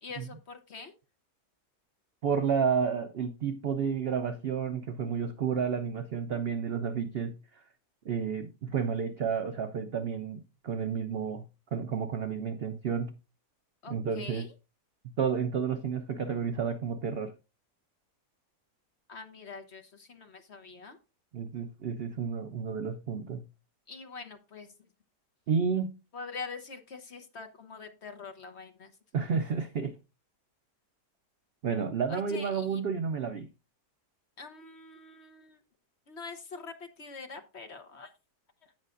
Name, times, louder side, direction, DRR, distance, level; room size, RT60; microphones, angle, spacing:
voice 1, 0.0-0.9 13.8-14.5 19.1-21.0 23.9-24.7 26.1-28.9 32.1-32.8 34.4-35.6 36.1-38.1, left 4 dB, 45° left, 1.1 m, -44 dB
voice 2, 2.2-7.4 8.0-11.4 11.7-13.2 13.9-14.5 15.0-17.3 21.3-23.4 25.5-25.9 29.1-30.0 31.6-33.5, right 6 dB, 70° right, 0.5 m, -31 dB
16.5 x 5.6 x 2.5 m
omnidirectional pair, 1.8 m